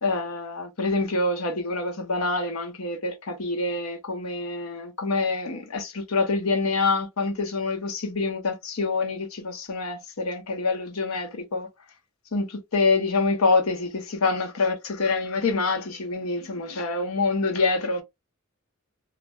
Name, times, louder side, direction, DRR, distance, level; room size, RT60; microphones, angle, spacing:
voice 1, 0.0-11.7 12.3-18.0, left 3 dB, 80° left, 0.8 m, -26 dB
2.4 x 2.2 x 3.1 m
head